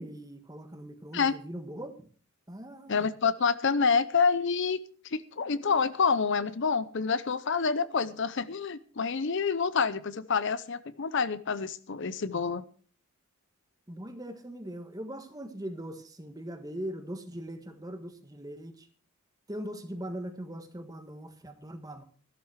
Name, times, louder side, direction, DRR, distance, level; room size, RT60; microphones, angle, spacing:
voice 1, 0.0-2.1 2.5-3.1 13.9-18.9 19.5-22.0, right 1 dB, 15° right, 8 dB, 1.5 m, -40 dB
voice 2, 2.9-4.8 5.0-12.6, left 5 dB, 55° left, 15 dB, 0.6 m, -27 dB
13.5 x 12.0 x 4.8 m, 0.42 s
head